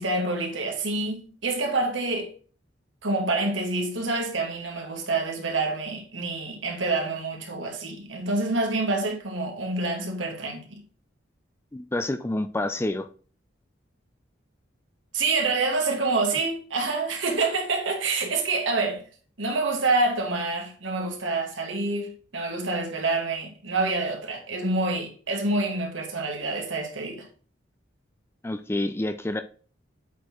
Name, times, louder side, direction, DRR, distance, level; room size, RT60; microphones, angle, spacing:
voice 1, 0.0-2.3 3.0-10.8 15.1-19.0 19.4-27.3, right 3 dB, 85° right, 2.0 m, -27 dB
voice 2, 11.7-13.1 28.4-29.4, left 1 dB, 15° left, 0.4 m, -28 dB
8.2 x 4.4 x 3.0 m
head